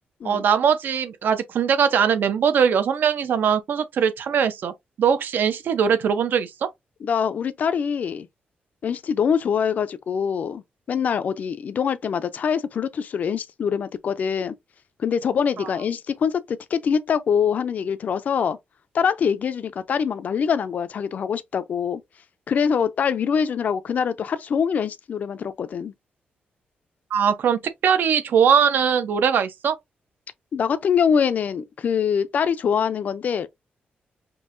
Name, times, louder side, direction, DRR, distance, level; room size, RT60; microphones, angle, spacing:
voice 1, 0.2-4.7 5.0-6.7 27.1-29.8, right 7 dB, 70° right, 0.7 m, -21 dB
voice 2, 7.0-8.3 8.8-10.6 10.9-14.5 15.0-18.6 18.9-22.0 22.5-25.9 30.5-33.5, left 7 dB, 50° left, 0.4 m, -24 dB
5.4 x 2.7 x 2.5 m
wide cardioid pair, 175°, 3 cm